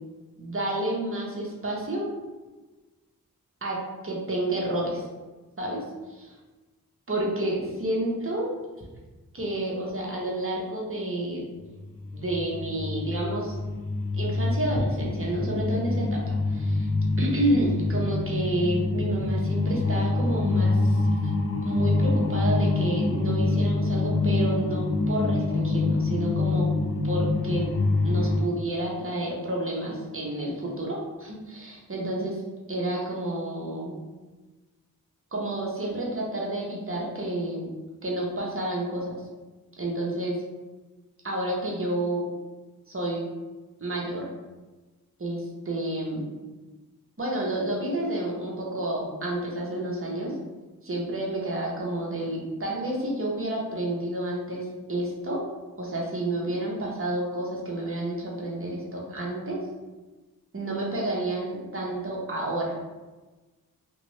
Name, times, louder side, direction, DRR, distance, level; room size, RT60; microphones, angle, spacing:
voice 1, 0.4-2.1 3.6-3.8 4.0-5.0 5.6-6.4 7.1-8.5 9.3-11.4 12.1-13.6 14.1-16.9 17.2-21.1 21.6-26.7 27.0-27.7 28.0-32.4 32.7-33.9 35.3-37.7 38.0-39.2 39.8-40.4 41.2-42.2 42.9-43.3 43.8-44.3 45.2-46.2 47.2-50.3 50.8-55.4 55.8-59.6 60.5-62.8, right 1 dB, 35° right, -3 dB, 0.9 m, -30 dB
sound 1, 11.7-28.4, left 3 dB, 40° left, 0.6 m, -26 dB
3.0 x 2.5 x 3.2 m, 1.2 s
cardioid pair, 50°, 37 cm